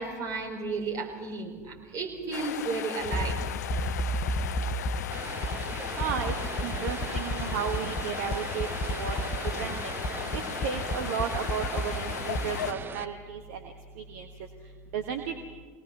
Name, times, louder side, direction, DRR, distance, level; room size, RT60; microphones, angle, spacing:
voice 1, 0.0-3.4, right 3 dB, 40° right, 1 dB, 4.8 m, -33 dB
sound 1, 2.3-12.7, left 10 dB, 70° left, 0.6 m, -37 dB
sound 2, 3.0-12.7, equal, 40° left, 1.1 m, -32 dB
Vehicle, 5.1-13.0, right 5 dB, 25° right, 0.9 m, -40 dB
voice 2, 6.0-9.2 9.5-9.9 10.3-14.3 14.9-15.3, right 7 dB, 60° right, 4 dB, 1.4 m, -34 dB
24.0 x 18.5 x 6.1 m, 1.5 s
figure-of-eight pair, 75°, 9 cm